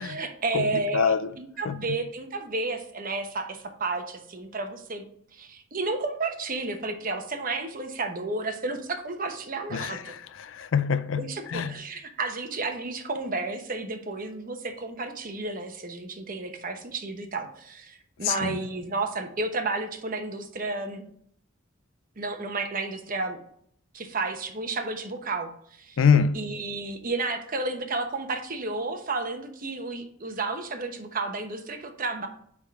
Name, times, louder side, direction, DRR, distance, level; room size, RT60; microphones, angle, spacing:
voice 1, 0.0-5.0 5.3-10.1 11.2-21.1 22.2-23.4 23.9-26.0 26.3-32.3, right 3 dB, 45° right, 0.9 m, -32 dB
voice 2, 0.9-1.3 1.7-1.8 9.7-11.7 18.2-18.6 26.0-26.4, left 6 dB, 75° left, 0.4 m, -25 dB
8.8 x 3.7 x 3.6 m
head